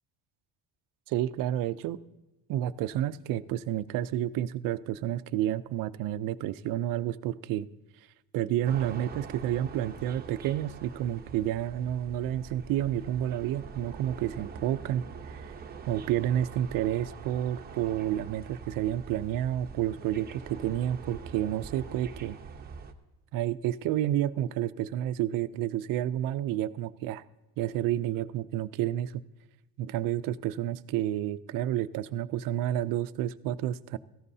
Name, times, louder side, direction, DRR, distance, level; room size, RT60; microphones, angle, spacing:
voice 1, 1.1-2.0 2.5-7.7 8.3-15.5 15.9-22.4 23.3-27.2 27.6-29.2 29.8-34.0, right 12 dB, 65° right, 13 dB, 0.6 m, -30 dB
sound 1, 8.6-22.9, right 5 dB, 25° right, 0.9 m, -44 dB
17.0 x 14.5 x 2.7 m, 1.0 s
cardioid pair, 140°, 36 cm